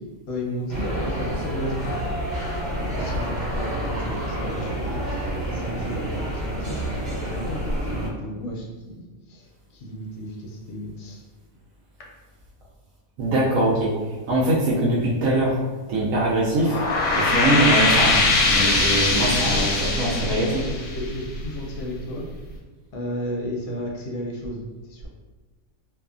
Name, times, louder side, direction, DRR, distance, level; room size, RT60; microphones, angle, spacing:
voice 1, 0.3-1.9 2.8-7.0 7.2-11.2 12.0-12.1 19.4-22.3 22.9-25.1, equal, 65° left, -2 dB, 0.8 m, -33 dB
sound 1, 0.7-8.1, equal, 40° right, 0.8 m, -28 dB
voice 2, 13.2-14.0 14.3-15.6 15.9-16.8 17.2-19.7 20.0-20.5, right 1 dB, 85° right, -6 dB, 1.0 m, -22 dB
sound 2, 16.5-21.7, left 3 dB, 90° left, 1.0 m, -21 dB
2.6 x 2.3 x 2.4 m, 1.3 s
omnidirectional pair, 1.4 m